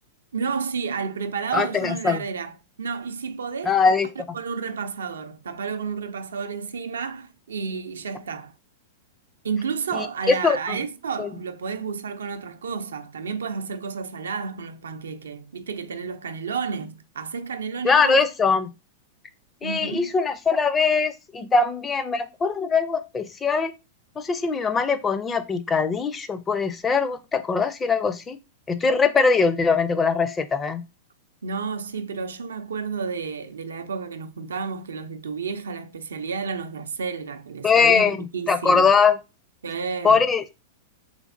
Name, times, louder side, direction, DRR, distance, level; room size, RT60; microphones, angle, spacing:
voice 1, 0.3-4.0 4.3-8.5 9.4-18.2 19.6-20.1 31.4-38.9 39.6-40.2, right 5 dB, 80° right, 0.5 m, -31 dB
voice 2, 1.5-2.2 3.6-4.1 9.9-10.8 11.2-11.3 17.8-18.7 19.6-23.7 24.2-28.4 28.7-30.8 37.6-38.2 38.5-39.2 40.0-40.5, left 5 dB, 20° left, 0.5 m, -21 dB
3.4 x 3.2 x 2.5 m
hypercardioid pair, 105°, 0 cm